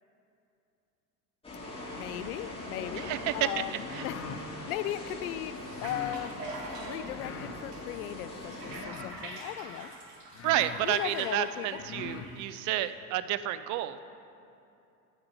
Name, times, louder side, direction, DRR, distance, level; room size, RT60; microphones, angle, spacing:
sound 1, 1.4-8.9, left 2 dB, 10° left, 2.5 m, -41 dB
voice 1, 1.9-6.5 6.8-9.9 10.8-11.7, left 12 dB, 65° left, 13 dB, 0.6 m, -37 dB
voice 2, 3.0-4.1 10.4-14.0, right 12 dB, 40° right, 13 dB, 0.5 m, -31 dB
sound 2, 3.7-4.5 5.7-6.2 7.1-7.6 8.6-9.2 9.9-10.0 10.3-10.9 11.7-12.3, left 6 dB, 30° left, 0.8 m, -42 dB
sound 3, 5.5-12.9, right 2 dB, 80° right, 1.7 m, -45 dB
10.5 x 8.6 x 5.6 m, 2.7 s
hypercardioid pair, 80°, 47 cm